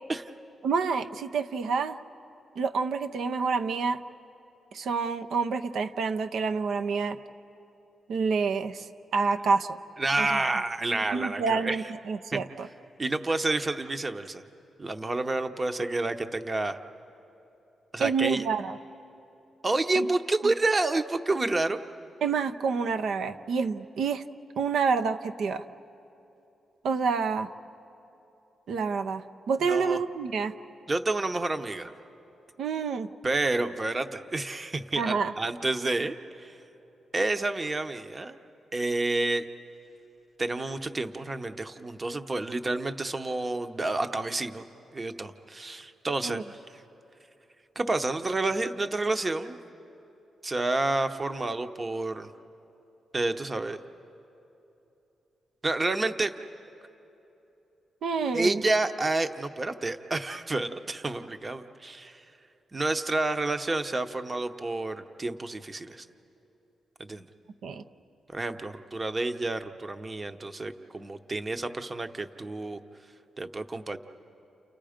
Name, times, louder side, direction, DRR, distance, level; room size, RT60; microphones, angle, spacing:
voice 1, 0.6-2.0 2.6-4.0 4.7-7.2 8.1-8.9 9.1-9.8 10.2-10.3 11.1-12.7 18.0-18.8 19.9-20.1 22.2-24.2 24.6-25.6 26.8-27.5 28.7-30.5 32.6-33.1 35.0-35.3 46.2-46.4 58.0-58.6 67.6-67.8, right 5 dB, 80° right, 7 dB, 0.7 m, -28 dB
voice 2, 10.0-11.8 12.3-12.4 13.0-14.4 14.8-16.8 17.9-18.4 19.6-21.8 29.7-30.0 30.9-31.9 33.2-36.5 37.1-38.4 38.7-39.4 40.4-44.6 44.9-46.4 47.8-49.6 50.4-52.3 53.1-53.8 55.6-56.3 58.3-62.2 62.7-66.0 67.0-67.3 68.3-72.8 73.4-74.0, right 2 dB, 25° right, 8 dB, 0.8 m, -29 dB
30.0 x 30.0 x 5.1 m, 3.0 s
wide cardioid pair, 140°, 0 cm